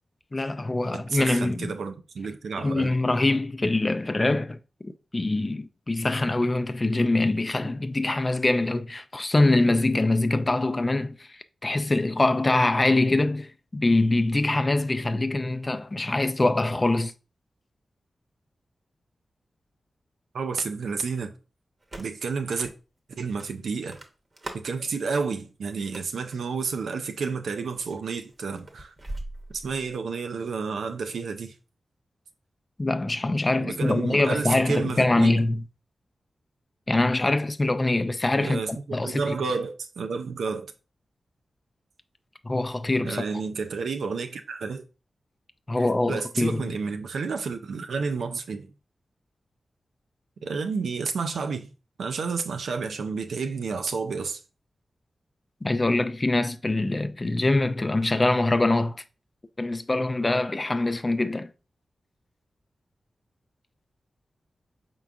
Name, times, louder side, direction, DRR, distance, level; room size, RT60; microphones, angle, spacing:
voice 1, 0.3-1.7 2.6-4.6 4.8-17.1 32.8-35.6 36.9-39.4 42.4-43.2 45.7-46.7 55.6-59.0 59.6-61.5, left 2 dB, 35° left, 0.4 m, -24 dB
voice 2, 0.9-2.9 20.3-21.3 22.0-22.7 23.1-24.0 24.5-28.9 29.5-31.5 33.6-35.3 38.4-40.7 43.0-44.8 45.8-48.7 50.4-51.7 52.0-54.4, right 5 dB, 85° right, 0.4 m, -30 dB
sound 1, 21.8-22.3 22.6-22.7 23.4-24.7 25.7-26.4 27.1-27.4 27.7-30.0, right 1 dB, 45° right, 0.9 m, -40 dB
4.5 x 3.8 x 2.4 m
cardioid pair, 45°, 0 cm